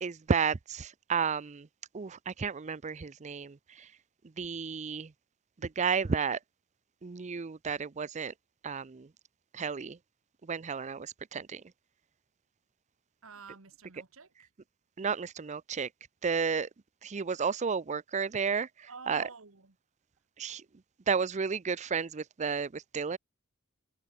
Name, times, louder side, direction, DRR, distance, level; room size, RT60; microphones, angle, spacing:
voice 1, 0.0-1.7 1.9-3.6 4.4-5.1 5.8-6.4 7.0-8.3 8.6-9.1 9.5-10.0 10.5-11.6 15.0-15.9 16.2-16.7 17.0-18.7 19.1-19.3 20.4-20.6 21.1-23.2, right 5 dB, 35° right, 0.5 m, -32 dB
voice 2, 13.2-14.5 18.9-19.7, right 5 dB, 65° right, 1.7 m, -49 dB
head